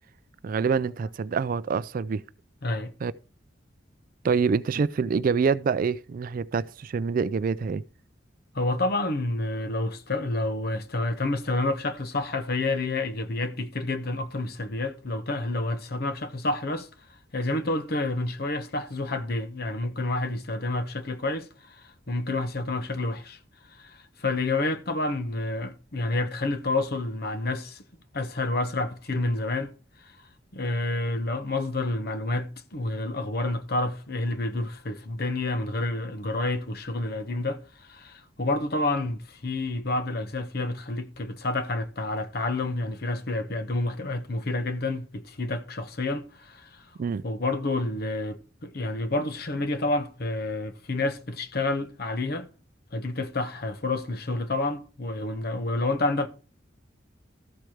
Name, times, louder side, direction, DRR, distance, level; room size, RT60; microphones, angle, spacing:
voice 1, 0.4-2.2 3.0-3.1 4.2-7.8 47.0-47.2, right 5 dB, 50° right, 0.3 m, -26 dB
voice 2, 2.6-2.9 8.5-16.9 17.3-23.4 23.7-27.8 28.1-29.7 30.0-30.2 30.5-46.9 47.2-52.5 52.9-56.3, left 2 dB, 55° left, 0.9 m, -29 dB
13.5 x 4.6 x 4.9 m
head